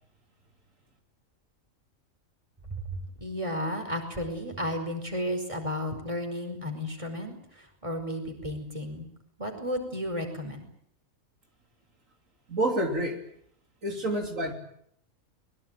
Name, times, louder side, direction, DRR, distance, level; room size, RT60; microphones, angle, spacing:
voice 1, 3.2-9.1 9.4-10.6 13.9-14.0, equal, 25° right, 5 dB, 5.3 m, -33 dB
voice 2, 12.5-13.2 13.8-14.5, right 1 dB, 75° right, 3 dB, 3.8 m, -28 dB
23.5 x 22.0 x 9.3 m, 0.67 s
omnidirectional pair, 1.4 m